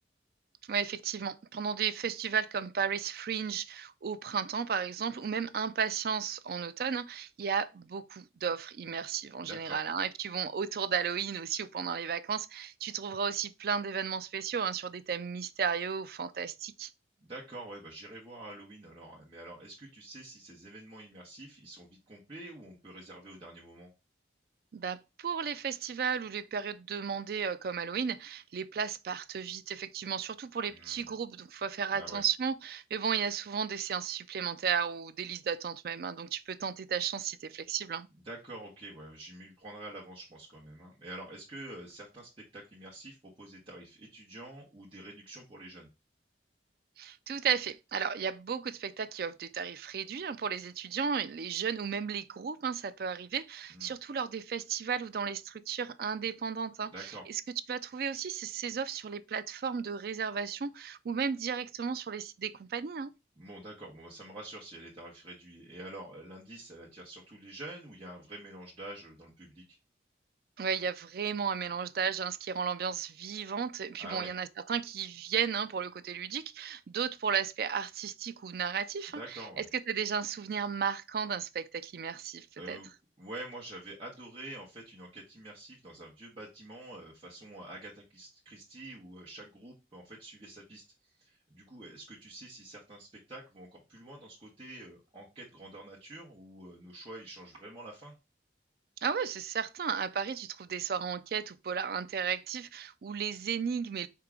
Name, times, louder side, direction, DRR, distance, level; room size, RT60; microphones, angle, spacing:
voice 1, 0.7-16.9 24.7-38.1 47.0-57.4 57.7-63.1 70.6-82.8 99.0-104.1, right 6 dB, 55° right, 0.3 m, -34 dB
voice 2, 9.4-9.8 17.2-23.9 30.7-31.1 31.9-32.2 38.2-45.9 53.7-53.9 56.9-57.2 63.4-69.8 74.0-74.3 79.1-79.7 82.6-82.9 83.2-98.1, right 1 dB, 30° right, 1.2 m, -47 dB
4.7 x 2.9 x 3.6 m
head